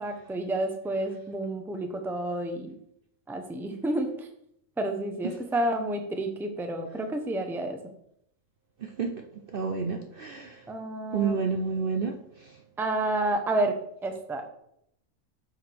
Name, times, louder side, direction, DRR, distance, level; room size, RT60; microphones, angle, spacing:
voice 1, 0.0-2.7 3.3-4.3 4.8-7.8 10.7-11.4 12.8-13.7 14.0-14.5, right 1 dB, ahead, 5 dB, 0.6 m, -30 dB
voice 2, 8.8-9.1 9.5-10.6 11.1-12.5, right 5 dB, 50° right, 4 dB, 0.7 m, -30 dB
9.3 x 6.4 x 3.4 m, 0.74 s
omnidirectional pair, 1.5 m